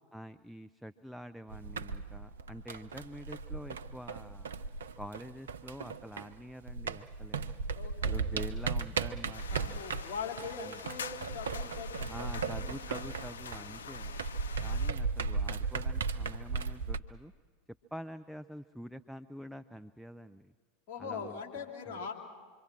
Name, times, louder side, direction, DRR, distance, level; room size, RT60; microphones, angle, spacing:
voice 1, 0.1-4.5 5.0-7.5 8.0-9.8 10.6-10.8 12.1-14.2 14.6-17.3 17.9-20.5 21.0-22.1, equal, ahead, 9 dB, 0.6 m, -46 dB
Walking stairs with shoes, 1.5-6.4 6.7-17.0, right 4 dB, 75° right, 0.6 m, -36 dB
voice 2, 7.8-8.3 9.5-12.7 13.6-13.9 20.9-22.1, left 5 dB, 55° left, 1 dB, 3.4 m, -42 dB
sound 1, 9.3-14.9, left 6 dB, 75° left, 0.6 m, -45 dB
26.0 x 23.5 x 6.1 m, 1.5 s
figure-of-eight pair, 80°, 0 cm